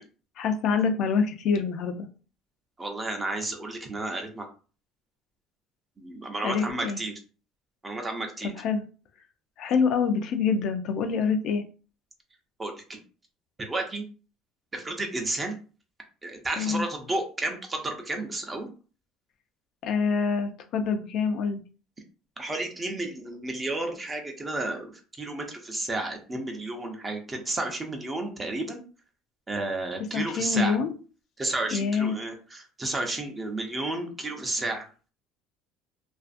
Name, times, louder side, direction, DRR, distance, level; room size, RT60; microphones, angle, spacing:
voice 1, 0.4-2.1 6.4-7.0 8.4-8.8 9.6-11.6 16.6-16.9 19.8-21.6 30.1-30.9 31.7-32.1, left 5 dB, 60° left, 6 dB, 0.4 m, -26 dB
voice 2, 2.8-4.5 6.0-7.1 7.8-8.5 12.6-13.0 13.6-14.0 14.7-15.5 16.2-18.7 22.4-24.9 25.2-28.8 29.5-30.8 31.4-34.9, right 2 dB, 20° right, 4 dB, 0.6 m, -32 dB
2.5 x 2.4 x 2.5 m, 0.36 s
cardioid pair, 125°, 0 cm